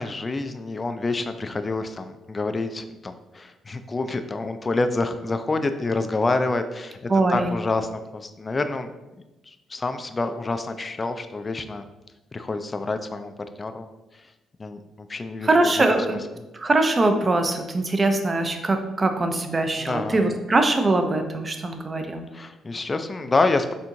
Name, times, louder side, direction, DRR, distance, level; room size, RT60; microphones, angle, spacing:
voice 1, 0.0-7.0 7.3-8.9 9.5-11.9 12.3-13.3 13.6-13.9 14.6-15.8 19.8-20.2 22.3-23.8, left 3 dB, 30° left, 8 dB, 0.3 m, -27 dB
voice 2, 7.1-7.6 15.4-16.2 16.5-22.2, right 2 dB, 30° right, 6 dB, 0.5 m, -22 dB
4.3 x 3.5 x 2.6 m, 1.1 s
cardioid pair, 90°, 0 cm